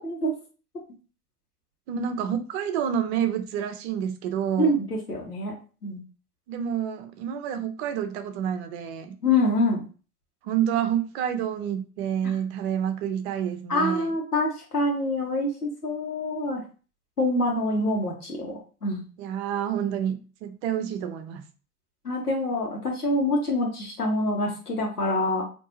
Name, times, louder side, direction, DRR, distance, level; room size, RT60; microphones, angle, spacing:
voice 1, 0.0-0.3 4.6-5.5 5.8-6.0 9.2-9.8 13.7-16.6 17.2-18.5 18.8-19.0 22.0-25.4, left 1 dB, 90° left, -1 dB, 1.4 m, -25 dB
voice 2, 1.9-4.8 6.5-9.1 10.4-14.1 19.2-21.4, right 9 dB, 45° right, 8 dB, 0.7 m, -28 dB
4.6 x 2.9 x 2.7 m, 0.36 s
figure-of-eight pair, 85°, 45 cm